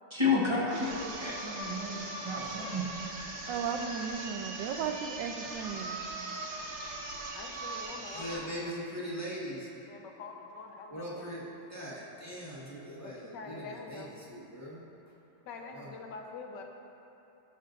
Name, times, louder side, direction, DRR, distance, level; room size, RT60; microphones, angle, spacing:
voice 1, 0.1-2.8, left 3 dB, 20° right, -5 dB, 0.8 m, -31 dB
sound 1, 0.6-8.5, right 2 dB, 90° right, 2.0 m, -40 dB
voice 2, 3.5-6.0, right 7 dB, 70° right, 6 dB, 1.2 m, -36 dB
voice 3, 7.3-8.8 9.7-11.5 13.0-14.1 15.5-16.6, left 4 dB, 65° left, 2 dB, 1.3 m, -45 dB
voice 4, 8.1-9.7 10.9-11.4 11.7-14.0 14.3-14.8 15.7-15.9, equal, 10° left, -7 dB, 1.2 m, -40 dB
17.5 x 6.7 x 2.6 m, 3.0 s
omnidirectional pair, 2.3 m